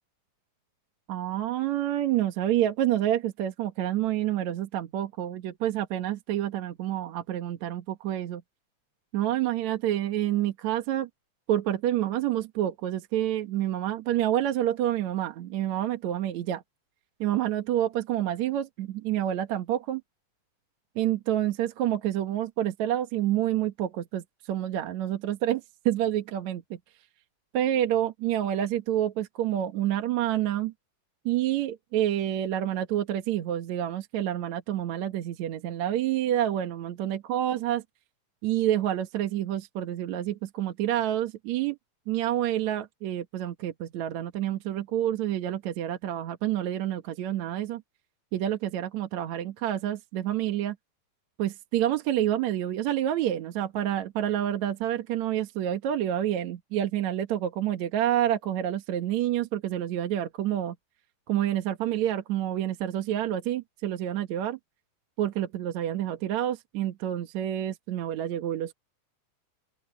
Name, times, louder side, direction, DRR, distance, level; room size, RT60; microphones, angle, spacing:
voice 1, 1.1-8.4 9.1-11.1 11.5-16.6 17.2-20.0 21.0-26.8 27.5-30.7 31.3-37.8 38.4-41.8 42.1-47.8 48.3-50.8 51.4-60.8 61.3-64.6 65.2-68.7, right 12 dB, 65° right, 2.4 m, -28 dB
open air
omnidirectional pair, 3.8 m